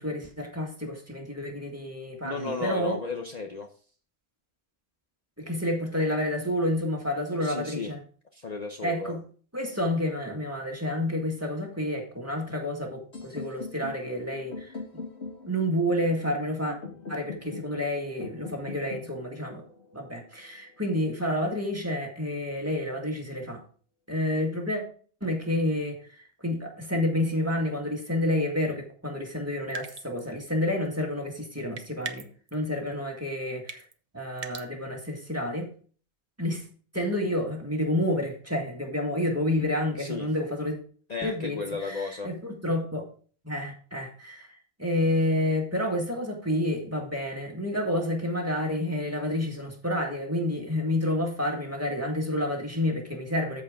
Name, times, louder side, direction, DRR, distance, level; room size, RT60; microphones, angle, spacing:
voice 1, 0.0-3.0 5.4-8.0 8.8-9.2 9.5-15.0 15.5-16.8 17.1-19.6 19.9-23.6 24.1-24.8 25.2-33.8 34.1-35.7 36.4-36.6 36.9-40.8 41.2-43.0 43.4-44.5 44.8-53.6, left 1 dB, 15° right, 0 dB, 1.9 m, -29 dB
voice 2, 2.2-3.7 7.4-7.9 8.3-9.2 40.0-40.3 41.1-42.3, left 4 dB, 40° left, 2 dB, 0.9 m, -33 dB
sound 1, 13.1-21.1, left 4 dB, 80° left, 2.5 m, -43 dB
sound 2, 29.7-30.3 31.8-32.5 33.7-33.9 34.4-34.7, right 5 dB, 40° right, 0.8 m, -38 dB
13.5 x 4.8 x 3.6 m, 0.43 s
omnidirectional pair, 1.1 m